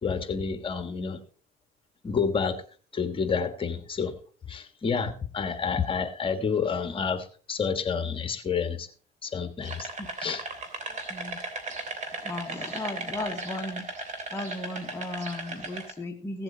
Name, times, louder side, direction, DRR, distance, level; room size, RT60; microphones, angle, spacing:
voice 1, 0.0-1.2 2.0-2.6 2.9-4.1 4.5-8.9 9.2-9.9 10.2-10.4, left 6 dB, 30° left, 9 dB, 1.6 m, -29 dB
sound 1, 9.6-15.9, right 3 dB, 45° right, 2.9 m, -36 dB
voice 2, 12.2-13.8 14.3-16.4, left 2 dB, 15° left, 1 dB, 1.3 m, -35 dB
16.0 x 7.8 x 4.1 m, 0.41 s
cardioid pair, 110°, 17 cm